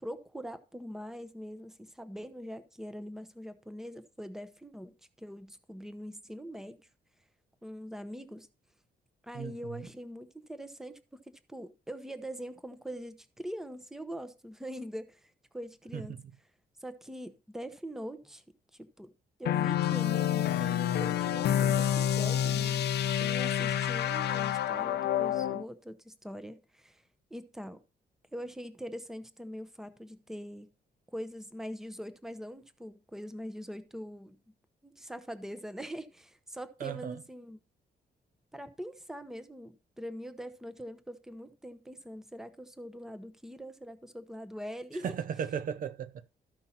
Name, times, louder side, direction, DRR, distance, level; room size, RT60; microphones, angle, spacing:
voice 1, 0.0-6.8 7.6-8.5 9.2-16.1 16.8-18.4 18.7-19.1 19.4-22.9 23.2-27.0 27.3-27.8 28.3-30.7 31.1-34.4 34.8-37.6 38.5-45.1, equal, ahead, 0.8 m, -43 dB
voice 2, 9.3-9.9 15.9-16.2 36.8-37.2 45.0-46.3, right 8 dB, 50° right, 0.5 m, -36 dB
sound 1, 19.4-25.6, left 10 dB, 70° left, 0.6 m, -28 dB
13.5 x 5.5 x 4.3 m
wide cardioid pair, 165°, 17 cm